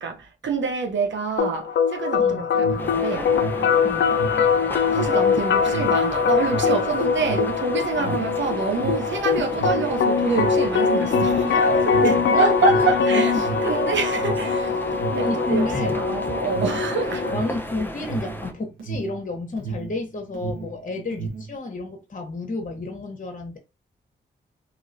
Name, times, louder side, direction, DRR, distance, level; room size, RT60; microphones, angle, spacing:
voice 1, 0.0-3.4 4.9-11.6 11.9-14.8 15.1-17.3, right 4 dB, 70° right, 0.9 m, -26 dB
sound 1, 1.4-17.4, left 6 dB, 65° left, 0.5 m, -22 dB
Alarm, 2.5-20.0 20.3-21.6, right 5 dB, 90° right, 1.2 m, -33 dB
sound 2, 2.8-18.5, left 1 dB, 10° left, 0.7 m, -35 dB
voice 2, 3.8-4.2 8.0-8.2 11.5-13.5 15.2-16.4 17.3-23.6, left 2 dB, 40° left, 1.1 m, -30 dB
2.9 x 2.9 x 2.7 m
supercardioid pair, 40°, 20 cm